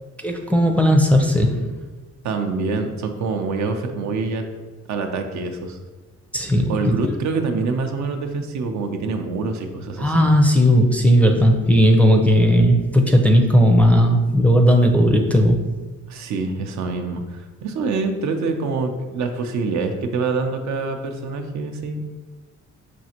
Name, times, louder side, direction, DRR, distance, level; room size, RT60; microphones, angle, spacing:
voice 1, 0.2-1.7 6.3-7.0 10.0-15.6, equal, 5° left, 1 dB, 0.5 m, -16 dB
voice 2, 2.2-4.4 4.9-5.8 6.7-10.3 16.1-22.0, right 4 dB, 65° right, 5 dB, 0.6 m, -25 dB
6.1 x 2.5 x 2.8 m, 1.3 s
cardioid pair, 90°, 30 cm